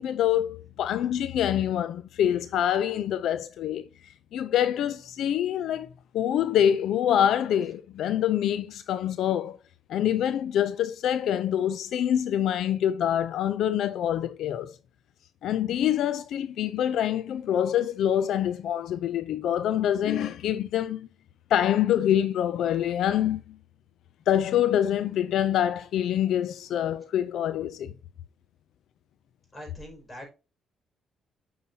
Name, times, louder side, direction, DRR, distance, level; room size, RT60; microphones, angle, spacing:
voice 1, 0.0-3.8 4.3-9.6 9.9-14.8 15.4-21.1 21.5-23.4 24.3-27.9, left 10 dB, 75° left, 0.4 m, -25 dB
voice 2, 29.5-30.3, equal, 20° left, 4.9 m, -43 dB
9.4 x 5.6 x 2.8 m
cardioid pair, 90°, 0 cm